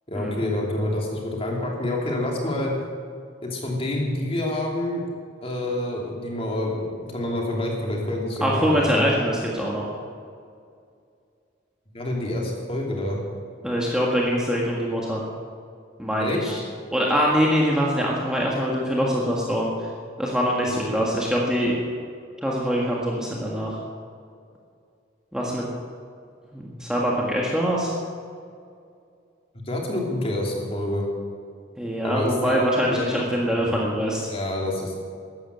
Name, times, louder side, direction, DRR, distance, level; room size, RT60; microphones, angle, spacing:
voice 1, 0.1-2.7 3.4-5.0 5.4-9.1 11.9-13.2 16.2-16.4 20.7-21.0 29.7-31.0 32.0-33.8 34.3-35.0, left 1 dB, 30° left, -1 dB, 2.8 m, -27 dB
voice 2, 8.4-9.9 13.6-15.2 16.0-16.6 16.9-19.7 20.2-21.7 22.4-23.8 25.3-25.7 26.5-27.9 31.8-34.3, equal, 5° right, -4 dB, 1.7 m, -23 dB
13.5 x 11.5 x 8.1 m, 2.3 s
head